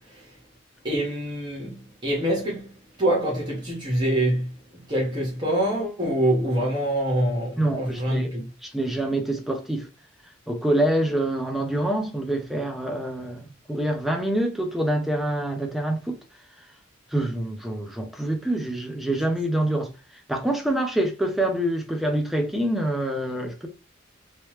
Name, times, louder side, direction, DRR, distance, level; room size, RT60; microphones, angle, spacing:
voice 1, 0.8-1.8 2.0-2.7 3.0-4.5 4.9-8.5, right 1 dB, 25° right, 1.1 m, -25 dB
voice 2, 7.6-8.3 8.6-9.9 10.5-16.2 17.1-19.9 20.3-23.7, right 1 dB, ahead, 0.6 m, -26 dB
3.1 x 3.0 x 3.1 m
head